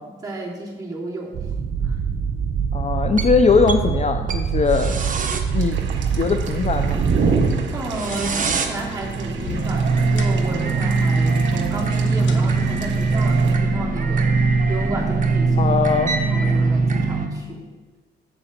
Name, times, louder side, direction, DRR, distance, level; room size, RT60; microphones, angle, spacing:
voice 1, 0.0-1.5 1.8-1.9 7.7-15.7 16.3-17.7, right 1 dB, 20° right, -4 dB, 2.9 m, -32 dB
sound 1, 1.3-17.3, right 4 dB, 40° right, 1.2 m, -21 dB
voice 2, 2.7-5.0 5.5-5.8 6.1-7.0 15.6-16.1, left 5 dB, 35° left, 7 dB, 0.6 m, -20 dB
sound 2, 5.5-13.5, right 6 dB, 70° right, 1.4 m, -34 dB
sound 3, 7.8-13.7, left 5 dB, 70° left, 1.2 m, -41 dB
8.0 x 7.6 x 5.9 m, 1.3 s
cardioid pair, 90°, 20 cm